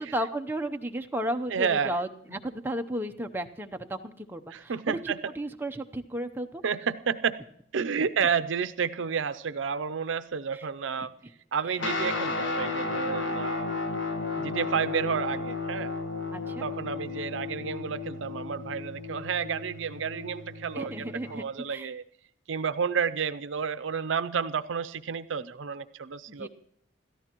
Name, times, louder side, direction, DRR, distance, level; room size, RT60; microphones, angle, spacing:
voice 1, 0.1-6.6 10.5-10.6 11.0-11.1 16.3-16.7 20.7-21.9 26.3-26.5, right 1 dB, 10° right, 5 dB, 0.7 m, -34 dB
voice 2, 1.5-1.9 4.5-5.3 6.6-7.4 7.7-11.1 11.5-13.8 14.4-15.9 16.6-22.0 22.5-26.5, right 6 dB, 80° right, 13 dB, 0.5 m, -30 dB
Guitar, 11.8-21.4, left 3 dB, 75° left, 1.5 m, -33 dB
27.5 x 14.0 x 3.0 m, 0.67 s
head